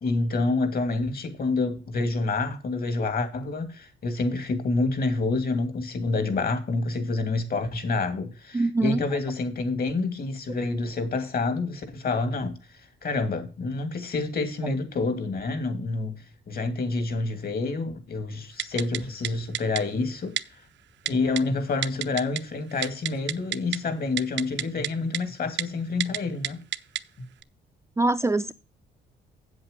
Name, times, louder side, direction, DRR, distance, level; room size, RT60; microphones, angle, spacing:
voice 1, 0.0-20.4 21.0-26.6, left 3 dB, 50° left, 2.6 m, -28 dB
voice 2, 8.5-9.0 28.0-28.5, right 2 dB, 15° right, 0.5 m, -23 dB
Typing, 18.6-19.0 19.2-19.3 19.5-19.8 20.4-20.5 21.1-21.4 21.8-22.4 22.7-23.8 24.2-24.9 25.1-25.2 25.6-25.7 26.0-26.2 26.4-27.0 27.4-27.5, right 12 dB, 65° right, 0.7 m, -28 dB
8.1 x 8.0 x 5.2 m
cardioid pair, 90°, 20 cm